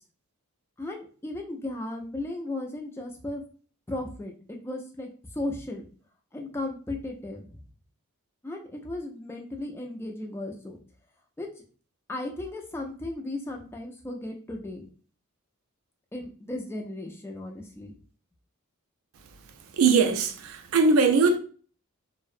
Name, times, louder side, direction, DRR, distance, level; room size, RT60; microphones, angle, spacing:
voice 1, 0.8-3.4 3.9-5.8 6.3-7.6 8.4-10.8 11.4-11.5 12.1-14.8 16.1-17.9, left 2 dB, 10° left, 0.3 m, -35 dB
voice 2, 19.8-21.4, right 4 dB, 65° right, 0.3 m, -21 dB
2.6 x 2.0 x 2.4 m
head